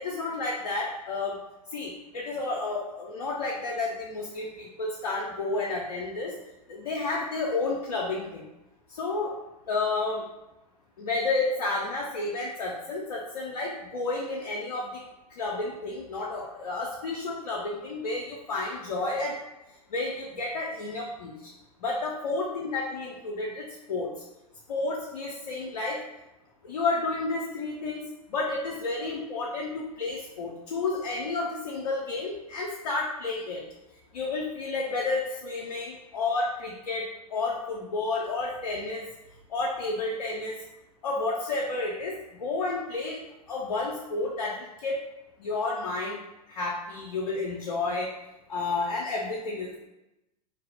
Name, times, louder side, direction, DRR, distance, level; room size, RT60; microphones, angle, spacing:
voice 1, 0.0-1.4 1.7-6.3 6.7-8.4 8.9-9.3 9.7-10.2 11.0-15.0 15.4-19.4 19.9-21.5 21.8-24.1 24.7-26.0 26.6-33.6 34.1-37.0 37.3-39.1 39.5-40.6 41.0-43.2 43.5-45.0 45.4-46.2 46.5-48.1 48.5-49.8, left 3 dB, 75° left, -3 dB, 0.5 m, -31 dB
2.6 x 2.0 x 3.3 m, 0.96 s
figure-of-eight pair, 95°, 20 cm